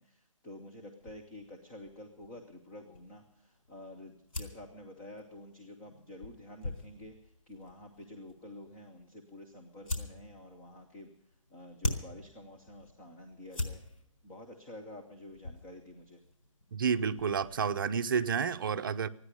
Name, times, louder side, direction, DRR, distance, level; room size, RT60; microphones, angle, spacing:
voice 1, 0.0-11.1 11.5-13.8 14.2-16.2, left 1 dB, 10° left, 0.5 m, -49 dB
sound 1, 1.0-17.9, left 2 dB, 80° left, 4.3 m, -44 dB
voice 2, 16.7-19.1, right 6 dB, 40° right, 0.6 m, -30 dB
14.5 x 9.7 x 9.8 m
hypercardioid pair, 175°, 17 cm